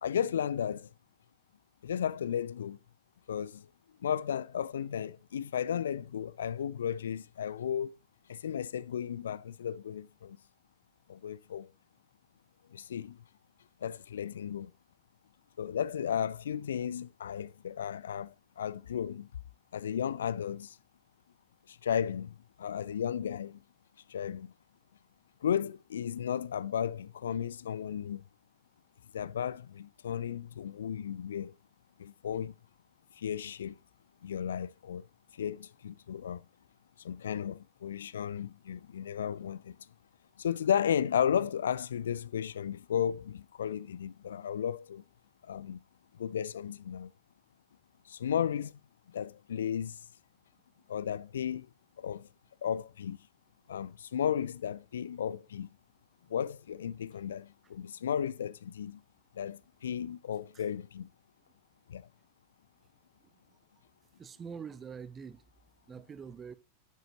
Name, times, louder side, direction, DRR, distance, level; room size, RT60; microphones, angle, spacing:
voice 1, 0.0-0.9 1.8-2.8 3.3-3.7 4.0-8.0 8.3-10.4 11.1-11.7 12.7-13.2 13.8-14.7 15.6-19.3 19.7-20.8 21.7-23.6 24.1-24.5 25.4-28.2 29.1-31.5 32.0-32.5 33.2-33.8 34.2-35.1 35.3-36.4 37.0-39.8 40.4-45.0 45.4-45.8 46.1-47.1 48.1-48.8 49.1-50.0 50.9-51.7 52.0-52.3 52.6-53.2 53.7-55.7 56.3-59.0 59.4-61.1 61.9-62.0, left 8 dB, 65° left, 0.3 m, -34 dB
voice 2, 64.2-65.4 65.9-66.5, right 6 dB, 20° right, 0.7 m, -44 dB
9.1 x 7.8 x 2.8 m
figure-of-eight pair, 90°, 0 cm